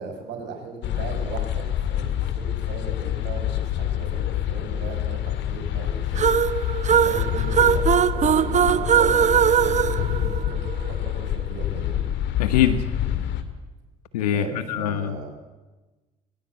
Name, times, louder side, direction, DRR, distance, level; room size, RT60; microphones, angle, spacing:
voice 1, 0.0-1.6 1.9-10.6 10.9-12.0 14.3-15.3, right 4 dB, 65° right, 4 dB, 5.2 m, -37 dB
sound 1, 0.8-13.4, left 11 dB, 65° left, 2.3 m, -27 dB
sound 2, 6.2-10.9, right 8 dB, 35° right, 1.0 m, -20 dB
voice 2, 12.4-12.8 14.1-15.3, left 10 dB, 85° left, 11 dB, 1.1 m, -23 dB
21.0 x 20.5 x 8.7 m, 1.1 s
hypercardioid pair, 60°, 20 cm